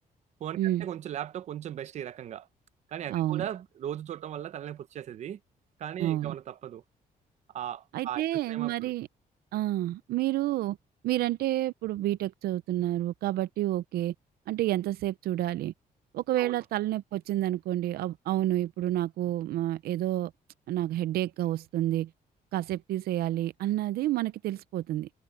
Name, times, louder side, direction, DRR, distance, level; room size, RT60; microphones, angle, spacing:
voice 1, 0.4-2.5 2.9-5.4 5.8-6.8 7.5-8.9 16.4-16.6, right 10 dB, 50° right, 0.7 m, -38 dB
voice 2, 3.1-3.4 6.0-6.3 7.9-9.1 9.5-10.8 11.0-14.1 14.5-15.7 16.1-20.3 20.7-22.1 22.5-25.1, right 14 dB, 85° right, 0.5 m, -29 dB
cardioid pair, 175°, 16 cm